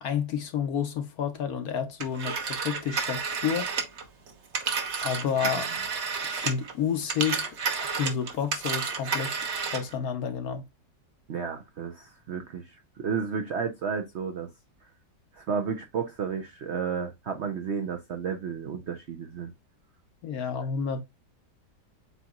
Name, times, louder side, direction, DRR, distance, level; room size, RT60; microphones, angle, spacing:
voice 1, 0.0-3.7 5.0-5.7 6.3-9.3 9.7-10.6 20.2-21.0, left 7 dB, 65° left, 1.0 m, -30 dB
Telephone, 2.0-6.7 7.0-9.9, right 5 dB, 50° right, 0.9 m, -31 dB
voice 2, 11.3-14.5 15.3-19.5, right 6 dB, 75° right, 0.6 m, -32 dB
7.9 x 2.9 x 2.3 m
omnidirectional pair, 2.0 m